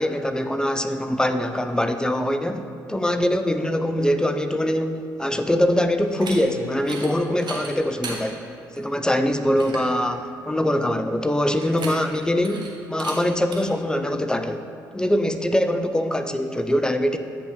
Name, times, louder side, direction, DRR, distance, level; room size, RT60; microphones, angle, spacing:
voice 1, 0.0-8.4 8.8-14.6 14.9-17.2, left 1 dB, 10° left, 8 dB, 0.5 m, -23 dB
sound 1, 6.1-6.4 6.8-7.1 7.4-8.2 8.7-8.8 9.2-9.3 9.6-9.9 11.6-12.2 12.4-12.7 13.0-13.2 13.5-13.6, right 4 dB, 45° right, 1.5 m, -35 dB
8.4 x 5.3 x 4.8 m, 2.6 s
figure-of-eight pair, 45°, 10 cm